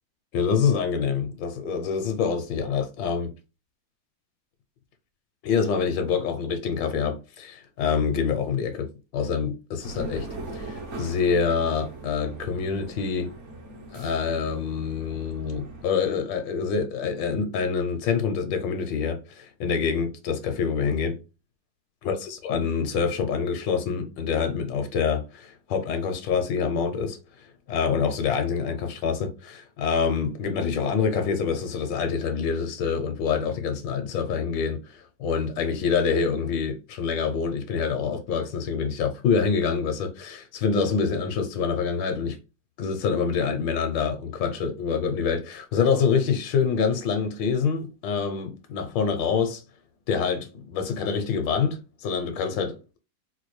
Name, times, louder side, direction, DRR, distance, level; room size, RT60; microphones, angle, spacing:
voice 1, 0.3-3.3 5.4-8.9 9.1-10.3 10.5-13.3 13.9-21.2 22.0-27.2 27.7-42.4 42.8-49.6 50.1-53.0, left 6 dB, 80° left, 1.3 m, -26 dB
sound 1, 9.8-15.8, right 3 dB, 55° right, 0.9 m, -40 dB
4.3 x 2.3 x 3.1 m
omnidirectional pair, 2.0 m